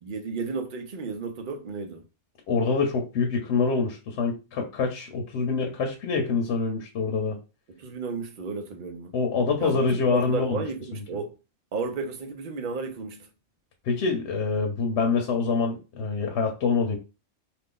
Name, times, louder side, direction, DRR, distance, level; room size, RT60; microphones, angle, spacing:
voice 1, 0.0-2.0 7.8-9.1 9.6-11.3 11.7-13.3, right 4 dB, 50° right, 0.7 m, -33 dB
voice 2, 2.5-7.4 9.1-10.6 10.9-11.2 13.8-17.0, left 4 dB, 70° left, 1.0 m, -26 dB
2.6 x 2.5 x 3.6 m
omnidirectional pair, 1.2 m